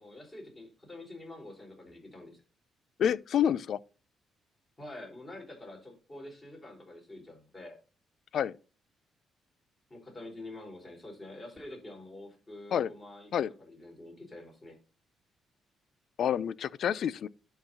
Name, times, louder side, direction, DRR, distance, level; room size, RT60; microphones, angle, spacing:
voice 1, 0.0-2.4 4.8-7.8 9.9-14.8, left 1 dB, 25° left, 4.5 m, -47 dB
voice 2, 3.0-3.8 8.3-8.5 12.7-12.9 13.3-13.5 16.2-17.3, left 9 dB, 65° left, 0.4 m, -28 dB
11.0 x 3.9 x 4.2 m
cardioid pair, 90°, 0 cm